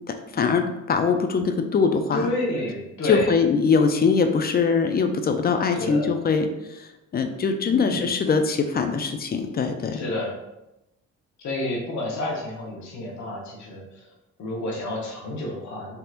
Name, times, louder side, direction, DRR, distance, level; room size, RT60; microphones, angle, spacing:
voice 1, 0.3-2.3 3.0-10.0, left 5 dB, 30° left, 6 dB, 0.4 m, -22 dB
voice 2, 2.1-3.3 5.7-6.1 7.7-8.1 10.0-10.3 11.4-14.0 14.4-16.0, left 2 dB, 65° left, -2 dB, 1.0 m, -29 dB
3.4 x 2.8 x 2.4 m, 0.93 s
cardioid pair, 90°, 30 cm